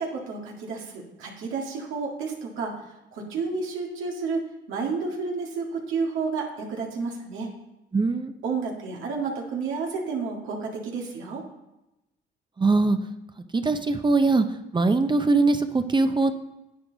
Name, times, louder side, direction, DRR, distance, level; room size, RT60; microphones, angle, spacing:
voice 1, 0.0-2.8 3.1-7.5 8.4-11.4, right 4 dB, 90° right, -1 dB, 2.0 m, -31 dB
voice 2, 7.9-8.3 12.6-13.0 13.5-14.5 14.7-16.3, right 3 dB, 25° right, 8 dB, 0.7 m, -21 dB
9.9 x 8.8 x 4.0 m, 0.93 s
cardioid pair, 90°, 20 cm